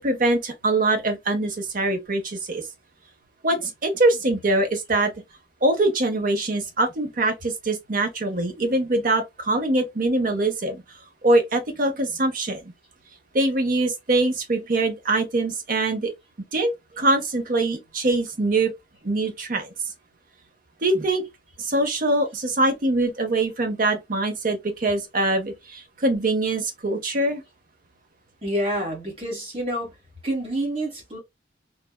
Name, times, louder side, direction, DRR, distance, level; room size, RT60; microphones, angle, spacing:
voice 1, 0.0-2.6 3.4-5.1 5.6-10.8 11.2-12.7 13.3-16.1 16.5-18.7 19.0-19.7 20.8-21.2 21.6-27.4, right 2 dB, 45° right, 0.7 m, -23 dB
voice 2, 28.4-30.0 30.2-31.2, right 1 dB, 30° right, 1.6 m, -28 dB
3.2 x 2.3 x 2.2 m
head